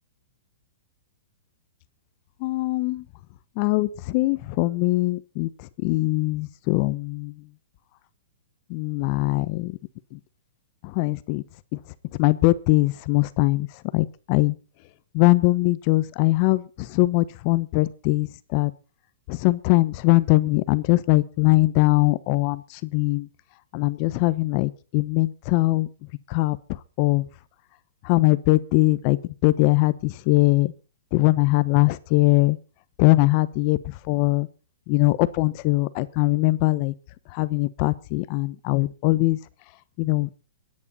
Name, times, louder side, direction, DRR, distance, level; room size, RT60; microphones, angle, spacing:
voice 1, 2.4-3.0 3.6-7.3 8.7-9.8 10.1-10.2 10.8-11.4 11.7-11.8 12.2-13.7 13.9-14.6 15.1-18.7 19.3-23.3 23.7-25.9 26.3-26.6 27.0-27.3 28.0-30.7 31.1-32.6 33.0-34.5 34.9-36.9 37.3-39.4 40.0-40.3, left 21 dB, 40° left, 16 dB, 1.0 m, -21 dB
23.5 x 9.8 x 4.2 m, 0.35 s
hypercardioid pair, 145°, 0 cm